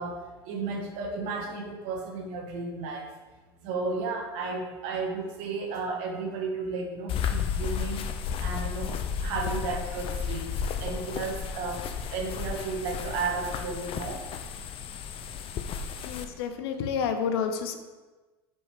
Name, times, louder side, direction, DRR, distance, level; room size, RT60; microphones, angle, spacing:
voice 1, 0.0-3.1 3.6-8.1 8.4-10.5 10.8-14.2, right 3 dB, 60° right, 1 dB, 1.6 m, -33 dB
sound 1, 7.1-16.2, left 7 dB, 45° left, 0.7 m, -33 dB
voice 2, 16.0-17.8, left 6 dB, 75° left, 7 dB, 0.9 m, -29 dB
7.0 x 5.3 x 4.9 m, 1.3 s
hypercardioid pair, 95°, 13 cm